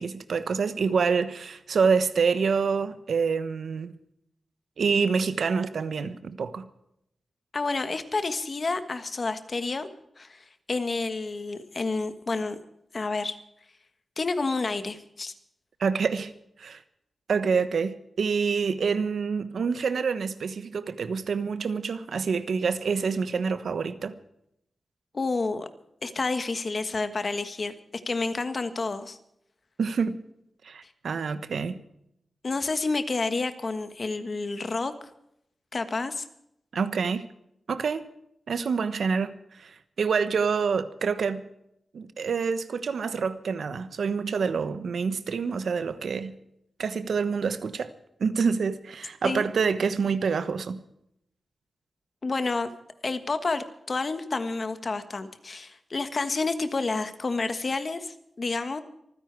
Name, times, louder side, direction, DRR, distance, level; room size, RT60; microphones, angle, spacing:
voice 1, 0.0-4.0 4.8-6.6 15.8-16.3 16.6-16.8 17.3-24.2 29.8-30.2 30.6-31.8 36.7-37.3 37.7-38.1 38.5-41.5 41.9-46.3 46.8-47.9 48.2-50.8, right 5 dB, 75° right, 1.1 m, -27 dB
voice 2, 7.5-9.9 10.2-12.6 12.9-13.4 14.2-15.3 25.1-25.7 26.0-27.7 28.1-29.2 32.4-34.9 35.7-36.2 49.2-49.5 52.2-52.7 53.0-58.8, left 3 dB, 40° left, 1.4 m, -29 dB
25.5 x 10.0 x 4.7 m
wide cardioid pair, 145°, 0 cm